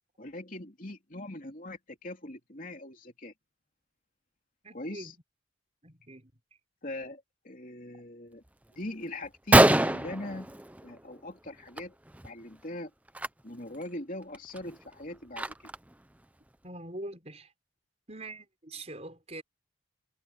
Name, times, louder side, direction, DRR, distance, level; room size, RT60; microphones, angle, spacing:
voice 1, 0.2-3.3 4.7-5.1 6.8-8.4 8.7-10.6 10.8-11.9 12.2-12.9 13.4-15.7, left 1 dB, 40° left, 3.2 m, -41 dB
voice 2, 4.6-5.2 5.8-6.3 16.6-17.5 18.1-19.4, right 2 dB, 30° right, 5.7 m, -43 dB
Gunshot gunfire, 8.8-8.9 9.2-9.3 9.5-11.1 11.5-11.8 12.1-12.3 13.1-13.3 13.8-13.9 14.3-15.9, right 1 dB, 5° right, 0.6 m, -24 dB
head